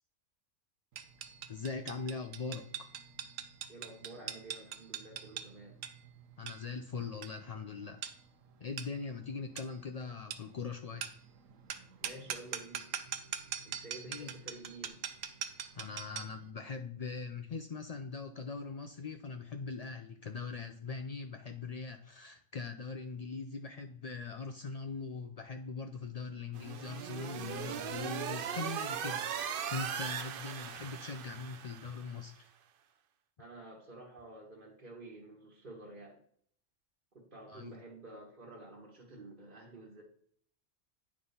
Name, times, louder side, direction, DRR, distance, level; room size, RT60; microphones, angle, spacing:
sound 1, 1.0-16.4, right 8 dB, 85° right, 1.1 m, -43 dB
voice 1, 1.5-2.7 6.4-8.0 8.6-11.1 14.1-14.3 15.7-32.5 37.5-37.7, left 4 dB, 75° left, 6 dB, 0.3 m, -41 dB
voice 2, 3.7-5.7 12.0-12.8 13.6-15.0 23.6-23.8 33.4-36.2 37.1-40.0, right 2 dB, 40° right, -2 dB, 1.5 m, -50 dB
sound 2, 26.5-32.1, right 8 dB, 60° right, 0.6 m, -39 dB
9.5 x 3.6 x 5.5 m, 0.62 s
omnidirectional pair, 1.3 m